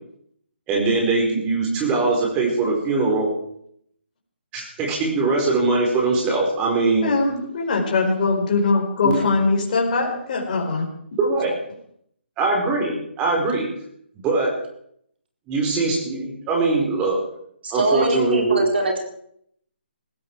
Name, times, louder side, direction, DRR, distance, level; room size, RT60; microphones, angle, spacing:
voice 1, 0.7-3.3 4.5-7.1 9.0-9.2 11.2-11.5 12.4-13.7 14.2-14.5 15.5-17.2 17.7-18.6, right 3 dB, 20° right, 0 dB, 4.5 m, -21 dB
voice 2, 7.0-10.9, left 3 dB, 40° left, 1 dB, 4.6 m, -21 dB
voice 3, 17.6-19.0, right 3 dB, 65° right, 1 dB, 4.6 m, -23 dB
20.0 x 15.5 x 4.8 m, 0.69 s
figure-of-eight pair, 145°, 6 cm